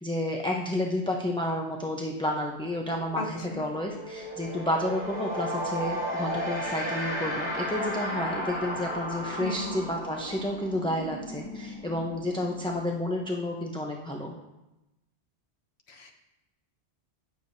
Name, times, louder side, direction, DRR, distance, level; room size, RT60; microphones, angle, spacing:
voice 1, 0.0-14.3, left 1 dB, 5° left, 0 dB, 0.6 m, -31 dB
sound 1, 2.3-2.5 2.8-13.4, equal, 25° left, 2.5 m, -35 dB
voice 2, 9.4-9.8 15.9-16.1, left 2 dB, 70° left, 3 dB, 1.4 m, -35 dB
17.0 x 6.9 x 2.7 m, 0.97 s
omnidirectional pair, 1.1 m